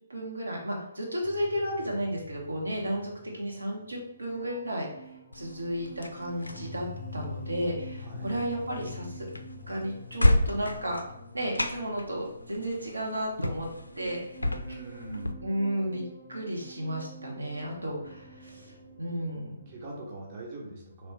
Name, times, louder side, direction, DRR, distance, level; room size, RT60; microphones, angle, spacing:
voice 1, 0.1-4.9 5.3-9.3 9.7-11.0 11.3-13.7 14.0-14.2 15.4-16.0 16.3-18.7 19.0-19.6, equal, 75° right, -1 dB, 0.9 m, -33 dB
sound 1, 1.2-20.1, left 1 dB, 15° left, 0.5 m, -46 dB
sound 2, 5.3-15.3, left 1 dB, 80° left, 0.3 m, -32 dB
voice 2, 14.4-15.4 19.5-21.1, right 2 dB, 30° right, -2 dB, 0.7 m, -42 dB
3.1 x 3.0 x 3.1 m, 0.84 s
figure-of-eight pair, 135°, 0 cm